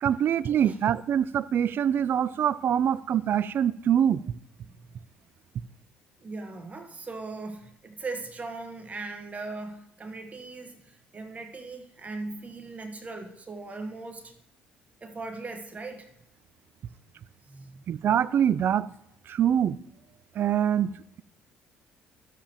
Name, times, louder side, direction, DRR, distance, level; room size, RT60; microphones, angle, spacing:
voice 1, 0.0-4.2 17.9-18.9 19.3-19.8 20.4-20.9, right 9 dB, 50° right, 19 dB, 0.4 m, -24 dB
voice 2, 6.2-14.3 15.0-16.1 17.5-17.8, right 3 dB, 30° right, 5 dB, 1.2 m, -39 dB
13.0 x 7.4 x 2.9 m, 0.78 s
hypercardioid pair, 60°, 5 cm